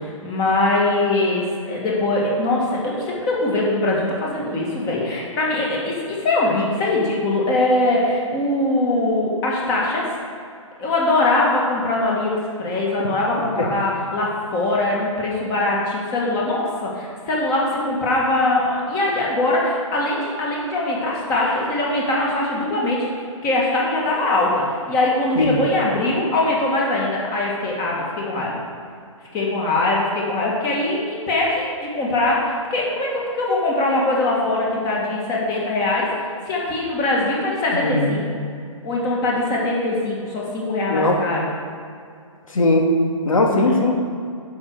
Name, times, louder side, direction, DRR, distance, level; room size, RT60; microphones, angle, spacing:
voice 1, 0.0-10.1 10.8-28.6 29.3-36.1 36.5-38.2 38.8-41.5 43.6-43.8, left 2 dB, 20° left, -3 dB, 1.8 m, -22 dB
voice 2, 37.8-38.1 40.9-41.1 42.5-42.9 43.3-43.9, left 2 dB, 75° left, 1 dB, 1.9 m, -18 dB
9.5 x 6.7 x 4.7 m, 2.3 s
hypercardioid pair, 145°, 17 cm